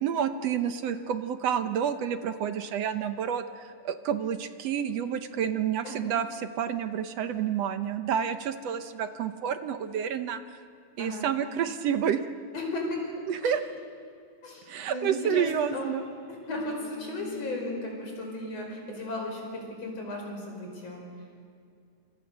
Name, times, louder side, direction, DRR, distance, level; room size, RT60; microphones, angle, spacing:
voice 1, 0.0-10.4 11.0-12.2 13.3-13.6 14.7-16.0, right 8 dB, 65° right, 10 dB, 1.8 m, -29 dB
voice 2, 12.5-13.0 13.4-13.5 14.4-15.9 16.3-21.0, left 2 dB, 55° left, 0 dB, 6.4 m, -35 dB
sound 1, 15.6-20.5, left 2 dB, 75° left, 4.4 m, -46 dB
30.0 x 27.0 x 6.7 m, 2.4 s
omnidirectional pair, 3.6 m